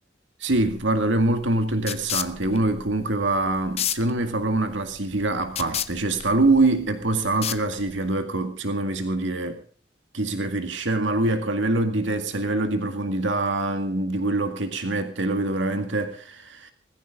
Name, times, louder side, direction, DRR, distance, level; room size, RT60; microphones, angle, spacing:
voice 1, 0.4-9.6 10.1-16.7, right 2 dB, 90° right, 2.0 m, -24 dB
sound 1, 0.5-8.1, left 9 dB, 35° left, 0.8 m, -34 dB
19.5 x 15.5 x 3.7 m
head